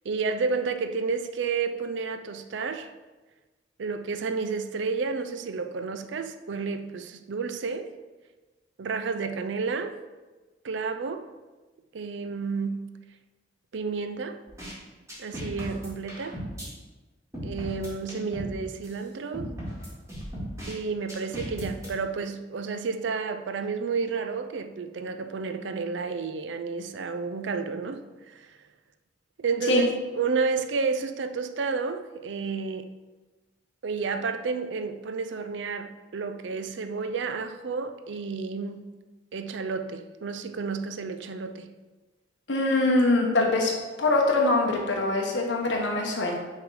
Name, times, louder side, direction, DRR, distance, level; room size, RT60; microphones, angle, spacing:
voice 1, 0.0-2.9 3.8-7.9 8.8-10.0 10.6-11.3 11.9-12.9 13.7-14.4 15.2-16.4 17.4-19.5 20.7-28.5 29.4-29.9 30.1-32.9 33.8-38.9 39.3-41.7, right 4 dB, 80° right, 0.4 m, -31 dB
sound 1, 14.5-14.7 15.1-16.7 17.3-18.5 18.8-18.9 19.3-20.7 21.1-21.9, equal, 15° right, 2.0 m, -36 dB
voice 2, 42.5-43.7 44.0-46.4, left 2 dB, 80° left, 1.2 m, -23 dB
6.3 x 3.8 x 4.8 m
head